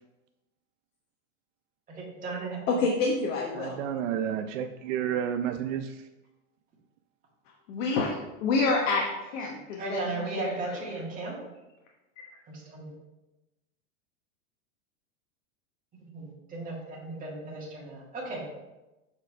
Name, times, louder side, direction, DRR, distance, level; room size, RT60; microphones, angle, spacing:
voice 1, 1.9-2.6 9.8-11.4 12.5-12.9 16.1-18.5, right 3 dB, 20° right, -4 dB, 1.9 m, -36 dB
voice 2, 2.7-3.8 7.7-8.1 8.4-11.0, left 3 dB, 75° left, 0 dB, 1.1 m, -28 dB
voice 3, 3.5-6.0, right 9 dB, 80° right, 6 dB, 0.5 m, -30 dB
6.5 x 4.7 x 3.4 m, 1.0 s
supercardioid pair, 135°, 37 cm